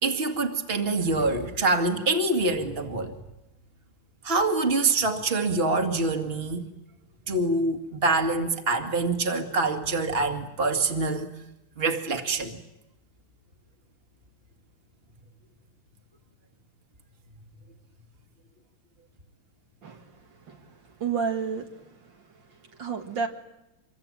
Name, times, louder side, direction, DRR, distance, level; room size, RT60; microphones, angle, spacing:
voice 1, 0.0-3.2 4.2-6.7 7.3-11.3 11.8-12.6, right 3 dB, 30° right, 2.3 m, -25 dB
voice 2, 20.5-22.1 22.8-23.3, right 6 dB, 65° right, 2.5 m, -31 dB
26.5 x 23.0 x 9.0 m
omnidirectional pair, 2.2 m